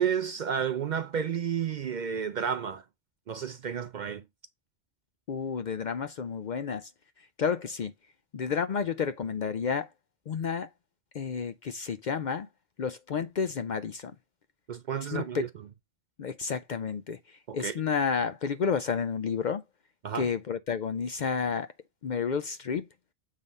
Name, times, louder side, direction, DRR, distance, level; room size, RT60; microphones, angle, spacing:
voice 1, 0.0-2.8 3.3-4.2 14.7-15.5 17.5-17.7 20.0-20.3, right 8 dB, 55° right, 0.5 m, -31 dB
voice 2, 5.3-6.9 7.4-7.9 8.3-9.9 10.3-10.7 11.1-12.5 12.8-14.1 15.1-15.5 16.2-19.6 20.1-21.7 22.0-22.9, left 6 dB, 55° left, 0.5 m, -31 dB
7.4 x 3.4 x 5.3 m
omnidirectional pair, 1.1 m